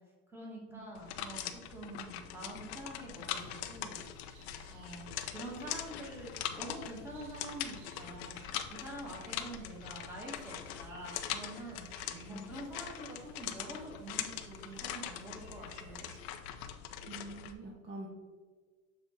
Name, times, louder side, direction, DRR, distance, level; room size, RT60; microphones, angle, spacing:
voice 1, 0.3-4.0 4.7-11.9 12.3-16.1, right 1 dB, 5° right, -3 dB, 1.3 m, -46 dB
sound 1, 1.0-17.5, left 10 dB, 55° left, 0.6 m, -42 dB
sound 2, 3.2-16.2, right 1 dB, 45° right, 1.1 m, -58 dB
voice 2, 12.1-12.5 17.1-18.1, right 2 dB, 30° right, -2 dB, 0.7 m, -46 dB
6.8 x 3.5 x 4.2 m, 1.5 s
supercardioid pair, 155°, 38 cm